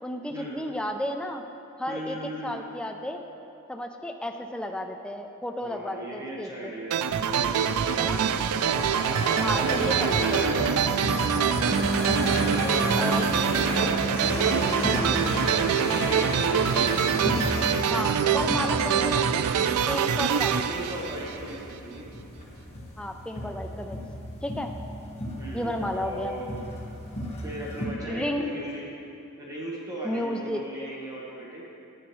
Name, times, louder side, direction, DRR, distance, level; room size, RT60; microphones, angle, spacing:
voice 1, 0.0-1.4 1.8-3.2 3.7-6.7 8.0-8.3 9.4-10.4 13.0-13.2 17.9-19.5 19.9-20.7 23.0-24.0 24.4-24.7 25.5-26.3 28.1-28.4 30.0-30.6, left 1 dB, 5° left, 4 dB, 0.3 m, -32 dB
voice 2, 1.9-2.5 5.6-8.2 9.5-10.6 12.2-16.9 18.5-19.0 20.7-22.0 25.3-26.6 27.4-28.8 29.4-31.6, right 1 dB, 15° right, -5 dB, 1.1 m, -37 dB
sound 1, 6.9-21.7, right 7 dB, 85° right, 0.3 m, -25 dB
sound 2, 8.0-27.9, equal, 30° left, 1.2 m, -33 dB
sound 3, 11.7-16.4, right 2 dB, 40° right, 0.6 m, -33 dB
10.0 x 8.2 x 3.1 m, 2.7 s
head